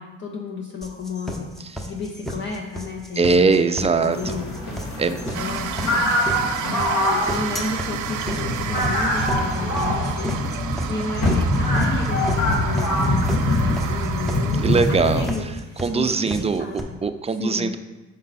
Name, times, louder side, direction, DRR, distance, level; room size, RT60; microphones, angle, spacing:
voice 1, 0.0-4.5 5.4-6.3 6.6-16.8 17.4-17.7, left 4 dB, 40° left, 1 dB, 0.7 m, -33 dB
sound 1, 0.8-16.8, equal, ahead, 0.8 m, -33 dB
voice 2, 3.2-4.4 5.0-5.2 6.3-6.8 10.8-11.0 14.6-15.5 15.8-17.8, right 4 dB, 20° right, 9 dB, 0.4 m, -22 dB
sound 2, 4.1-15.3, left 1 dB, 60° left, 1.8 m, -24 dB
sound 3, 5.3-15.0, right 9 dB, 80° right, 0.6 m, -32 dB
5.4 x 5.3 x 4.1 m, 1.2 s
cardioid pair, 90°, 30 cm